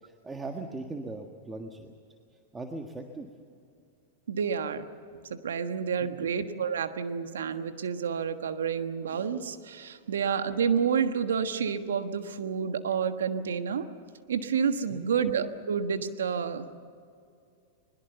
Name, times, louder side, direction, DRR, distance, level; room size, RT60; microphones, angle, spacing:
voice 1, 0.0-1.9 2.5-3.3 6.0-6.3 14.9-15.1, right 2 dB, 15° right, 3 dB, 1.6 m, -39 dB
voice 2, 4.3-4.9 5.3-13.9 14.3-16.7, right 7 dB, 85° right, 9 dB, 1.4 m, -29 dB
22.0 x 21.0 x 7.0 m, 2.4 s
hypercardioid pair, 115°, 0 cm